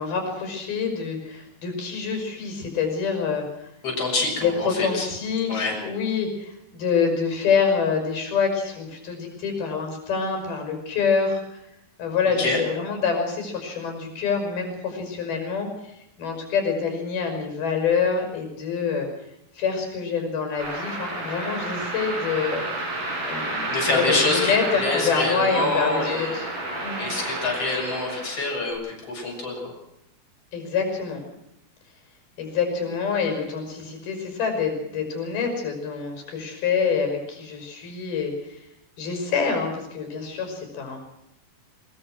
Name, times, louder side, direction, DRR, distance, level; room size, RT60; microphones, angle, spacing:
voice 1, 0.0-3.4 4.4-11.6 12.0-19.1 19.5-22.6 23.3-26.5 26.8-27.1 30.5-31.2 32.4-38.6 39.0-41.1, left 5 dB, 90° left, 4 dB, 7.5 m, -26 dB
voice 2, 3.8-5.1 5.5-5.8 12.4-12.6 23.7-26.4 27.0-29.5, left 2 dB, 40° left, -1 dB, 8.0 m, -26 dB
sound 1, 20.6-28.7, right 2 dB, 65° right, 8.4 m, -31 dB
23.0 x 22.0 x 6.3 m, 0.79 s
omnidirectional pair, 4.2 m